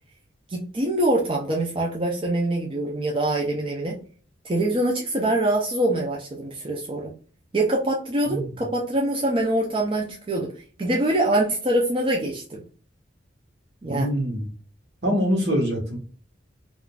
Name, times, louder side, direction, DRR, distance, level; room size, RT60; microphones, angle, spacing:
voice 1, 0.5-4.0 4.4-7.1 7.5-12.6 13.8-14.1, right 1 dB, 30° right, -2 dB, 0.5 m, -24 dB
voice 2, 13.8-14.5 15.0-16.0, equal, 65° right, 1 dB, 1.2 m, -24 dB
3.6 x 2.4 x 2.2 m, 0.39 s
head